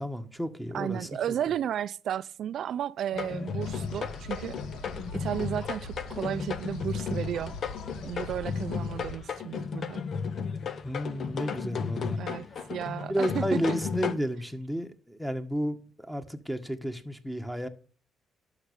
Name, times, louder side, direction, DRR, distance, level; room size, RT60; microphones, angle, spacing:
voice 1, 0.0-1.1 10.8-12.2 13.1-17.7, equal, ahead, 1.7 m, -32 dB
voice 2, 0.7-4.6 5.1-7.6 8.0-10.0 12.2-13.6, right 10 dB, 70° right, 0.5 m, -33 dB
sound 1, 3.1-14.1, left 6 dB, 60° left, 1.2 m, -34 dB
sound 2, 3.6-9.1, left 2 dB, 90° left, 2.0 m, -42 dB
11.5 x 6.9 x 7.0 m
cardioid pair, 90°, 0 cm